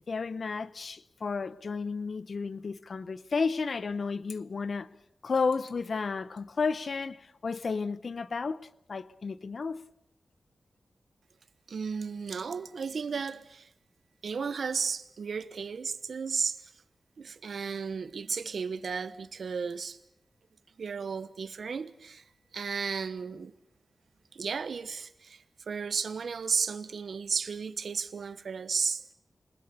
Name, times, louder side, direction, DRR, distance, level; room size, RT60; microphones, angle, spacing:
voice 1, 0.1-4.9 5.2-9.8, left 4 dB, 55° left, 0.8 m, -32 dB
voice 2, 11.7-13.7 14.2-16.7 17.2-20.0 20.8-22.2 22.5-23.5 24.3-29.1, right 5 dB, 70° right, 1.1 m, -34 dB
27.5 x 20.5 x 6.9 m
wide cardioid pair, 150°, 0 cm